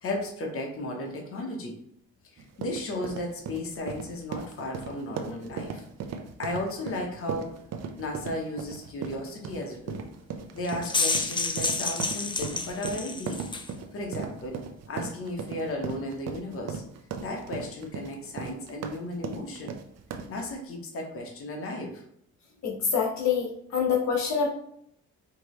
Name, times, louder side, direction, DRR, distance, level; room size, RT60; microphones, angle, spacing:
voice 1, 0.0-1.8 2.3-5.8 6.4-7.5 8.0-10.1 10.5-13.4 13.9-14.6 14.9-16.8 17.2-19.7 20.3-22.0, left 1 dB, 45° left, 0 dB, 1.1 m, -34 dB
sound 1, 2.4-20.4, right 6 dB, 60° right, 0.6 m, -38 dB
sound 2, 10.6-13.7, left 3 dB, 15° left, 0.4 m, -29 dB
voice 2, 22.6-24.5, left 6 dB, 65° left, -1 dB, 1.1 m, -26 dB
5.0 x 2.9 x 3.2 m, 0.71 s
cardioid pair, 90°, 30 cm